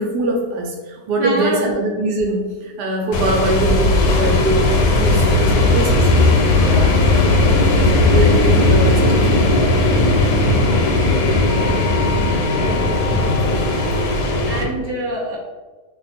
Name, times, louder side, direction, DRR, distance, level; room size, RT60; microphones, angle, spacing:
voice 1, 0.0-6.1 8.0-10.4, right 2 dB, 75° right, 0 dB, 1.2 m, -22 dB
voice 2, 1.2-1.7 6.6-7.2 12.6-12.9 14.4-15.4, right 1 dB, 50° right, -5 dB, 0.6 m, -25 dB
sound 1, 3.1-14.6, left 2 dB, 80° left, 1.1 m, -16 dB
2.9 x 2.3 x 4.1 m, 1.3 s
omnidirectional pair, 1.8 m